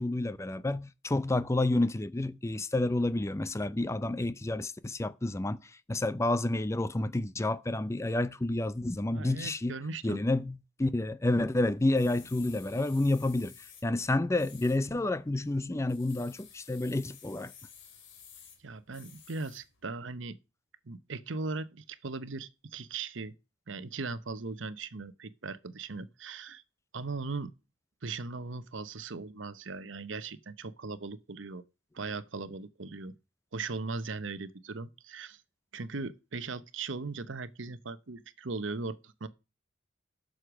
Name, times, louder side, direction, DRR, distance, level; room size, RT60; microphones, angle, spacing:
voice 1, 0.0-9.7 10.0-17.5, left 2 dB, 15° left, 0.4 m, -30 dB
voice 2, 9.1-10.2 18.6-20.4 20.8-23.3 23.7-26.6 26.9-27.5 28.0-31.6 31.9-33.1 33.5-35.4 35.7-39.3, right 3 dB, 70° right, 0.9 m, -38 dB
sound 1, 11.7-19.8, left 7 dB, 65° left, 2.6 m, -54 dB
7.9 x 6.6 x 6.2 m
head